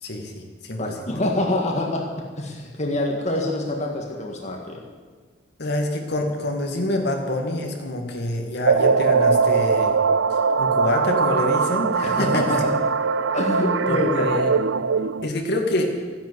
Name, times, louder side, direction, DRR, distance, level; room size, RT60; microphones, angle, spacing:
voice 1, 0.0-0.9 5.6-9.9 10.6-12.6 13.9-14.5 15.2-15.9, left 1 dB, 60° left, 3 dB, 2.0 m, -26 dB
voice 2, 0.8-4.8 12.0-12.7 13.3-14.3, left 1 dB, 35° left, 0 dB, 1.8 m, -26 dB
sound 1, 8.7-15.3, right 5 dB, 70° right, 0.5 m, -21 dB
14.0 x 10.5 x 8.2 m, 1.5 s
head